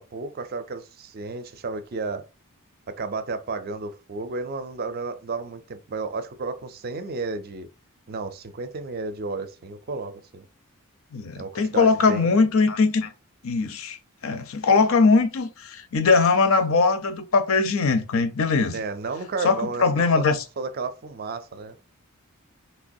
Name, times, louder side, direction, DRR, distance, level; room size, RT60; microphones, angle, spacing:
voice 1, 0.0-2.3 2.9-7.7 8.1-10.4 11.4-12.4 18.7-20.2 20.6-21.8, right 3 dB, 45° right, 0.4 m, -32 dB
voice 2, 11.1-13.1 13.4-14.0 14.2-18.8 19.4-20.4, left 4 dB, 65° left, 0.5 m, -21 dB
3.2 x 2.9 x 2.6 m
head